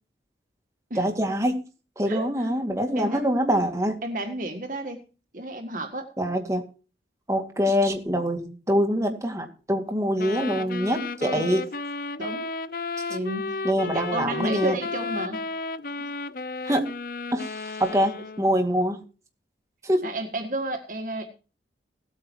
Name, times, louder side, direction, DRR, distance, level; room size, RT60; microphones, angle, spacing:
voice 1, 0.9-1.6 2.0-4.0 6.2-6.7 7.3-11.7 13.6-14.8 16.6-16.9 17.3-19.0 19.8-20.1, equal, 15° right, 3 dB, 2.1 m, -25 dB
voice 2, 2.1-2.5 3.0-3.2 4.0-5.0 5.3-6.1 11.2-11.5 12.2-12.5 13.1-15.5 20.0-21.3, right 1 dB, 45° right, 6 dB, 1.7 m, -32 dB
sound 1, 10.2-18.6, left 3 dB, 50° left, 0.6 m, -33 dB
17.5 x 9.0 x 4.6 m, 0.35 s
head